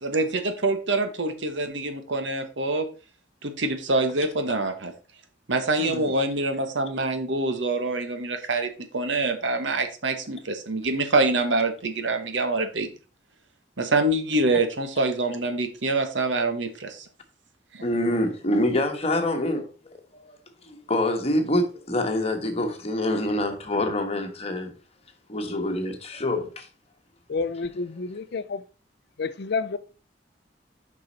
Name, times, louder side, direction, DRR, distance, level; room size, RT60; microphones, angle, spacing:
voice 1, 0.0-2.8 3.4-4.9 5.5-12.9 13.8-17.0 17.7-17.8, right 2 dB, 80° right, 1.2 m, -25 dB
voice 2, 5.8-6.1 17.8-19.6 20.1-20.4 20.6-24.7 25.3-26.7, left 1 dB, 35° left, 1.3 m, -26 dB
voice 3, 27.3-28.6 29.2-29.8, left 4 dB, 60° left, 0.5 m, -29 dB
6.6 x 5.5 x 4.1 m
head